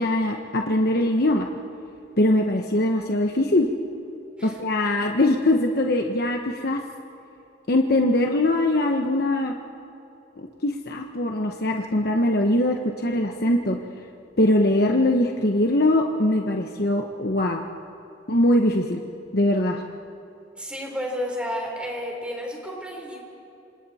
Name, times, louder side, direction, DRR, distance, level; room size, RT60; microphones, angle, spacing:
voice 1, 0.0-1.5 2.2-3.7 4.4-6.8 7.7-9.5 10.4-13.8 14.4-17.6 18.3-19.0 19.3-19.8, left 1 dB, 55° left, 2 dB, 1.1 m, -22 dB
voice 2, 20.6-23.2, equal, 5° right, 0 dB, 3.8 m, -31 dB
27.5 x 26.5 x 4.3 m, 2.7 s
head